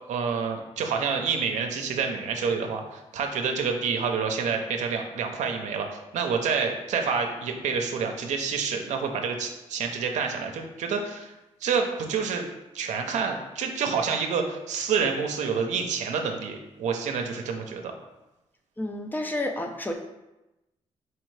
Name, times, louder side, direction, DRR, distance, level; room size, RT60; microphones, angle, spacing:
voice 1, 0.1-5.9 6.1-11.3 11.6-12.5 12.7-17.9, right 5 dB, 80° right, 3 dB, 0.6 m, -28 dB
voice 2, 18.8-19.9, left 1 dB, 15° left, 3 dB, 0.5 m, -30 dB
4.6 x 3.4 x 3.2 m, 0.98 s
cardioid pair, 75°, 12 cm